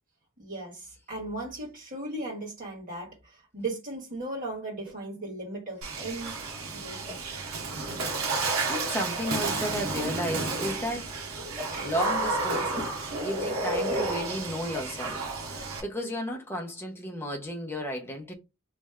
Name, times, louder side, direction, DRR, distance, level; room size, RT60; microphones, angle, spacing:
voice 1, 0.4-6.4 6.7-7.4 11.6-12.0, right 2 dB, 40° right, 1.8 m, -37 dB
sound 1, 4.8-5.0 5.9-6.1 7.0-7.2 8.0-8.2 9.2-9.4 10.6-10.8 11.5-11.7 12.7-12.8 13.7-13.8 14.7-14.9, left 3 dB, 5° right, 1.4 m, -41 dB
Water / Splash splatter, 5.8-15.8, right 3 dB, 90° right, 1.0 m, -31 dB
voice 2, 8.5-11.1 11.8-15.2 15.5-18.3, equal, 10° left, 0.8 m, -33 dB
3.2 x 2.6 x 3.5 m
head